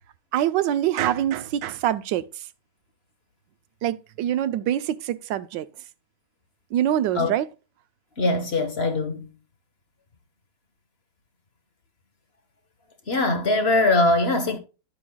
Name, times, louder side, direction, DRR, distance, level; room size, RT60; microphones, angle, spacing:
voice 1, 0.3-2.3 3.8-5.7 6.7-7.5, right 11 dB, 80° right, 1.3 m, -24 dB
voice 2, 8.2-9.3 13.1-14.6, left 2 dB, 40° left, 1.2 m, -21 dB
11.0 x 8.5 x 2.2 m
omnidirectional pair, 2.0 m